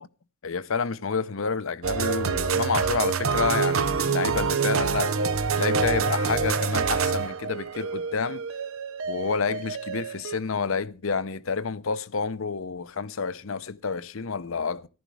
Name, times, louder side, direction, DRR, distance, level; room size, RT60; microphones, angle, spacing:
voice 1, 0.4-5.1 5.5-8.4 9.1-14.9, left 5 dB, 75° left, 0.8 m, -29 dB
sound 1, 1.8-10.4, right 5 dB, 85° right, 0.7 m, -26 dB
14.5 x 11.5 x 4.8 m
head